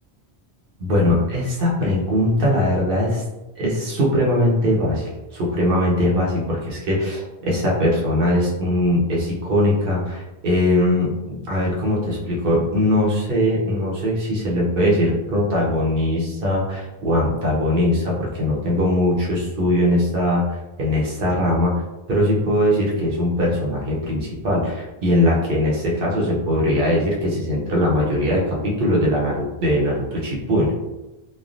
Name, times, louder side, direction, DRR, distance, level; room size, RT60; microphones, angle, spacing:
voice 1, 0.8-3.2 3.6-20.4 20.8-21.7 22.1-30.7, left 1 dB, 65° right, -4 dB, 0.9 m, -21 dB
3.2 x 2.2 x 2.5 m, 1.0 s
omnidirectional pair, 1.1 m